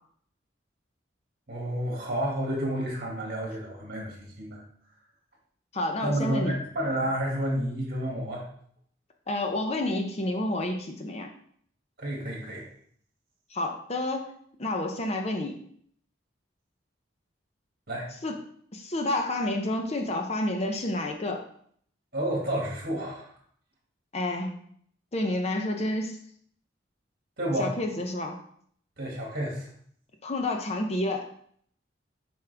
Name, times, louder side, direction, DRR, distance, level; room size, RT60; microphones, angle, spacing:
voice 1, 1.5-4.6 6.0-8.4 12.0-12.7 17.9-18.1 22.1-23.3 27.4-27.8 29.0-29.7, right 1 dB, 55° right, -1 dB, 2.2 m, -30 dB
voice 2, 5.7-6.6 9.3-11.3 13.5-14.3 14.6-15.6 18.2-18.4 18.7-21.4 24.1-24.6 25.1-26.2 27.6-28.4 30.2-31.3, left 1 dB, 35° left, 4 dB, 0.7 m, -29 dB
7.0 x 5.3 x 3.4 m, 0.62 s
head